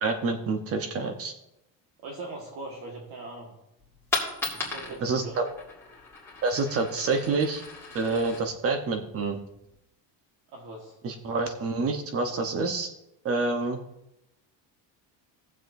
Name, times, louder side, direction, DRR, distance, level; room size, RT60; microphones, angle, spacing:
voice 1, 0.0-1.3 5.0-5.4 6.4-7.6 7.9-9.4 11.0-12.9 13.2-13.8, right 3 dB, 35° right, 6 dB, 0.9 m, -27 dB
voice 2, 2.0-3.5 4.5-5.4 10.5-11.0, right 2 dB, 55° right, -1 dB, 1.6 m, -40 dB
Coin (dropping), 3.8-9.8, left 4 dB, 5° left, 2.0 m, -37 dB
18.0 x 7.4 x 2.6 m, 0.87 s
cardioid pair, 170°, 42 cm